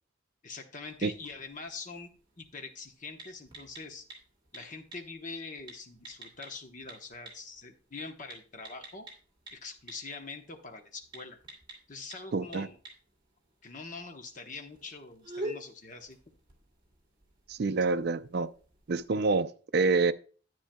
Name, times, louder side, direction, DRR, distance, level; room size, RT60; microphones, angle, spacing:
voice 1, 0.4-2.1 2.4-4.0 4.5-9.1 9.5-11.4 11.9-12.8 13.6-16.2, left 3 dB, 40° left, 1.0 m, -44 dB
sound 1, 0.8-19.1, right 1 dB, 25° right, 2.5 m, -49 dB
voice 2, 12.3-12.7 17.5-18.5 18.9-20.1, right 4 dB, 55° right, 0.4 m, -27 dB
10.0 x 9.2 x 2.2 m
head